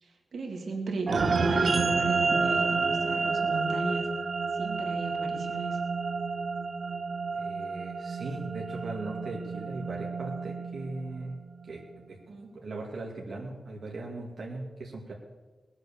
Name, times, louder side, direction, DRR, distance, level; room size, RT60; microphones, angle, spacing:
voice 1, 0.0-4.1 4.5-5.9 12.3-12.5, right 3 dB, 90° right, 2 dB, 2.4 m, -35 dB
sound 1, 1.1-11.7, right 4 dB, 50° right, 0.8 m, -30 dB
voice 2, 7.3-11.4 11.7-11.8 12.1-12.2 12.5-15.1, right 2 dB, 70° right, -2 dB, 2.1 m, -38 dB
20.0 x 8.0 x 7.0 m, 1.3 s
wide cardioid pair, 170°, 0 cm